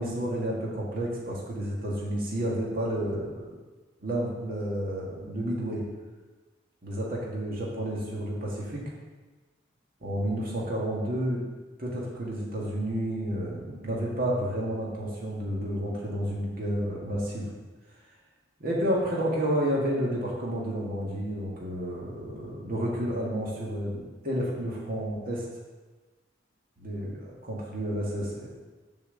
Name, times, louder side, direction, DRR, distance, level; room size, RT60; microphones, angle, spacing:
voice 1, 0.0-3.5 4.0-5.8 6.8-8.8 10.0-11.4 11.8-17.5 18.6-25.4 26.8-28.5, equal, 50° right, -4 dB, 1.7 m, -30 dB
6.8 x 4.6 x 6.8 m, 1.2 s
head